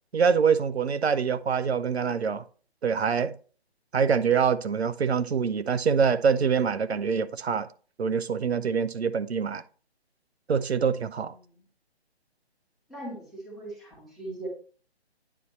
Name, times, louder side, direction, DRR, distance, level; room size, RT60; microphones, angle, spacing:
voice 1, 0.1-2.4 2.8-3.3 3.9-7.7 8.0-9.6 10.5-11.3, right 6 dB, 70° right, 0.7 m, -25 dB
voice 2, 12.9-14.5, right 2 dB, ahead, 2.1 m, -39 dB
9.3 x 4.1 x 4.1 m
figure-of-eight pair, 145°, 33 cm